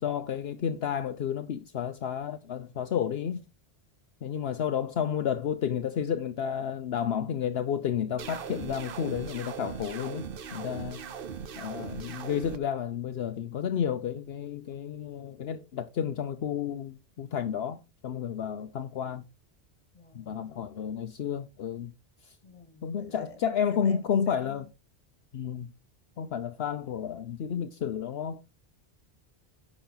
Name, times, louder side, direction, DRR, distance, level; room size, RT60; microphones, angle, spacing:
voice 1, 0.0-3.4 4.2-10.3 10.5-11.0 11.6-19.2 20.1-21.9 22.2-22.3 22.8-24.6 25.3-25.7 26.2-28.4, left 8 dB, 70° left, 1.0 m, -31 dB
sound 1, 8.2-12.6, right 6 dB, 60° right, 1.0 m, -39 dB
voice 2, 19.9-20.3 22.4-23.4 23.8-24.7, left 2 dB, 30° left, 2.0 m, -48 dB
10.0 x 6.4 x 3.9 m
omnidirectional pair, 1.1 m